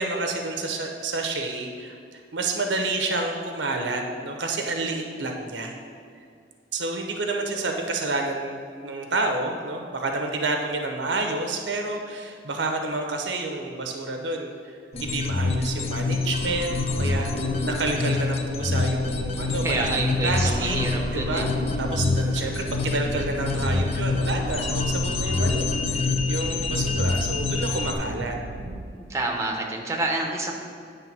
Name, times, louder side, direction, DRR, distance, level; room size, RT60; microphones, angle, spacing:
voice 1, 0.0-5.7 6.7-20.8 21.1-21.5 21.8-25.8 26.3-28.4, right 2 dB, 90° right, 3 dB, 0.8 m, -29 dB
sound 1, 14.9-27.9, left 3 dB, 35° left, 0.5 m, -26 dB
sound 2, 19.1-28.8, right 2 dB, 55° right, 0.6 m, -36 dB
voice 2, 19.6-21.4 28.9-30.5, right 2 dB, 15° right, 0 dB, 0.8 m, -28 dB
9.1 x 3.2 x 6.0 m, 2.3 s
head